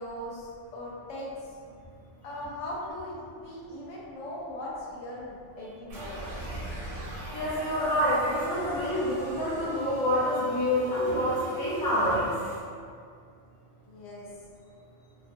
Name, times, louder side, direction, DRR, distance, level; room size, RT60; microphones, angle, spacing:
voice 1, 0.0-1.6 2.2-6.3 13.8-14.3, left 1 dB, 80° left, -5 dB, 0.9 m, -39 dB
sound 1, 5.9-12.6, right 1 dB, 60° right, 0.6 m, -39 dB
voice 2, 7.3-12.3, equal, 25° left, -10 dB, 0.5 m, -27 dB
2.4 x 2.2 x 2.5 m, 2.2 s
omnidirectional pair, 1.3 m